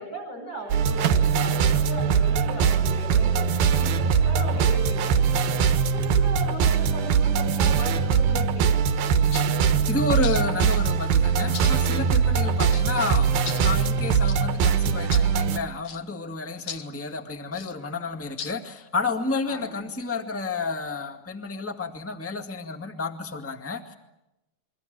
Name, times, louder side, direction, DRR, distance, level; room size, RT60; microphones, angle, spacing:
voice 1, 0.0-8.7 12.4-12.5 19.5-19.7, right 1 dB, 55° left, 7 dB, 8.5 m, -37 dB
Microwave oven, 0.6-6.6, right 12 dB, 70° right, 2.5 m, -39 dB
sound 1, 0.7-15.6, right 6 dB, 85° right, 3.1 m, -22 dB
sound 2, 9.3-9.5 10.2-10.8 11.5-11.7 12.7-12.9 13.5-13.6 14.2-14.4 15.1-15.3 15.8-16.0 16.7-16.9 17.5-17.7 18.4-18.6, left 7 dB, 90° left, 1.0 m, -37 dB
voice 2, 9.9-23.9, left 3 dB, 10° left, 5 dB, 0.8 m, -31 dB
28.5 x 23.5 x 7.9 m, 0.91 s
omnidirectional pair, 4.1 m